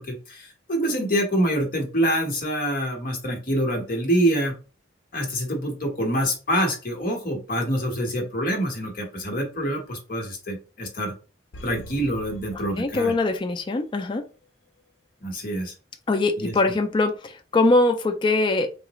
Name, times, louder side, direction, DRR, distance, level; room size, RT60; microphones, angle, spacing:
voice 1, 0.0-4.5 5.1-11.1 11.6-13.1 15.2-15.7 16.4-16.7, equal, 50° left, 1 dB, 1.2 m, -26 dB
sound 1, 11.5-13.7 14.0-14.1, equal, 90° left, 0.5 m, -44 dB
voice 2, 12.8-14.2 16.1-18.7, left 2 dB, 25° left, 6 dB, 0.3 m, -22 dB
3.8 x 2.4 x 3.0 m, 0.34 s
head